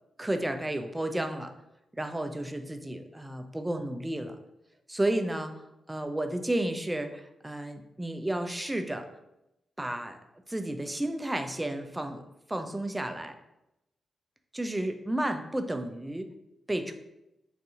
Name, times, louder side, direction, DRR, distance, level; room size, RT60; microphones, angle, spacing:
voice 1, 0.2-1.5 1.9-4.4 4.9-5.5 5.9-9.1 9.8-10.2 10.5-12.2 12.5-13.3 14.5-16.3 16.7-16.9, right 1 dB, 15° right, 7 dB, 0.4 m, -32 dB
2.6 x 2.5 x 3.6 m, 0.87 s
supercardioid pair, 45°, 0 cm